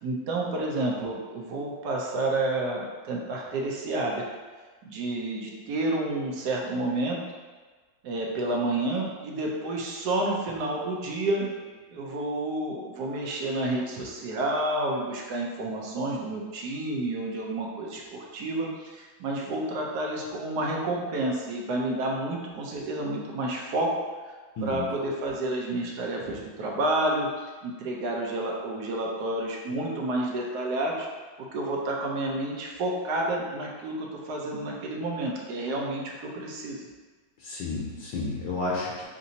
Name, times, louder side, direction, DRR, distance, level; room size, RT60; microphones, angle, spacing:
voice 1, 0.0-4.2 4.8-7.2 8.0-11.5 11.9-23.9 24.6-31.1 31.4-36.8, right 2 dB, 70° right, -1 dB, 1.1 m, -30 dB
voice 2, 24.6-24.9 37.4-39.0, left 3 dB, 75° left, -4 dB, 1.4 m, -31 dB
6.0 x 2.7 x 2.7 m, 1.4 s
omnidirectional pair, 2.0 m